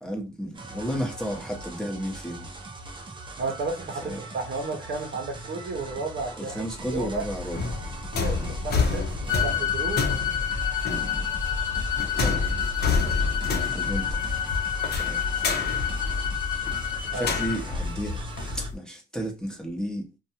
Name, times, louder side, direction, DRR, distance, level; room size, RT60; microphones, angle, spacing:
voice 1, 0.0-2.5 4.0-4.2 6.4-7.7 8.4-8.5 10.8-11.3 12.0-12.6 13.7-14.3 14.9-15.5 17.1-18.3 18.5-20.1, equal, 5° left, 0.8 m, -33 dB
sound 1, 0.5-18.7, right 2 dB, 25° right, 0.5 m, -41 dB
voice 2, 3.4-7.2 8.2-10.0 17.1-17.3, right 3 dB, 55° right, 0.8 m, -33 dB
sound 2, 6.7-18.7, left 3 dB, 55° left, 0.7 m, -29 dB
sound 3, 9.3-17.6, left 11 dB, 85° left, 1.0 m, -29 dB
2.6 x 2.2 x 2.8 m
cardioid pair, 90°, 20 cm